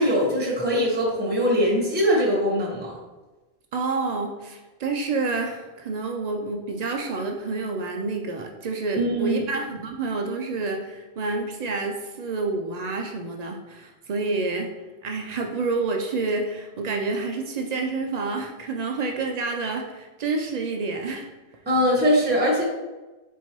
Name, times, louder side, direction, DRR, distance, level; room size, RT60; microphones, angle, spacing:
voice 1, 0.0-2.9 9.0-9.4 21.7-22.6, equal, 10° right, -3 dB, 0.9 m, -22 dB
voice 2, 3.7-14.7 15.0-21.3, right 3 dB, 80° right, 3 dB, 0.3 m, -28 dB
4.5 x 3.9 x 2.9 m, 1.2 s
omnidirectional pair, 1.3 m